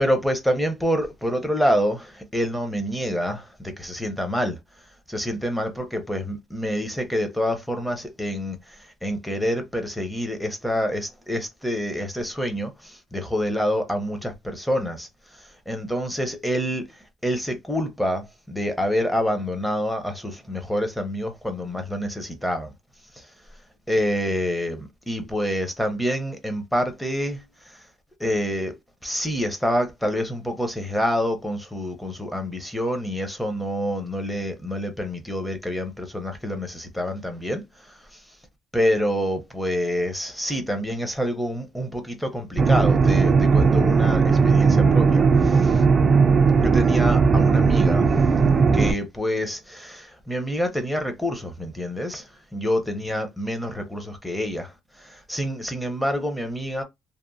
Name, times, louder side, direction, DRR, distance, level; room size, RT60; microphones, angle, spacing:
voice 1, 0.0-4.6 5.1-22.7 23.2-23.3 23.9-27.8 28.2-28.8 29.0-38.2 38.7-45.8 46.6-48.1 48.7-56.8, equal, 5° left, 0.6 m, -27 dB
sound 1, 42.6-48.9, right 5 dB, 30° right, 0.3 m, -17 dB
2.8 x 2.0 x 2.5 m
cardioid pair, 120°, 0 cm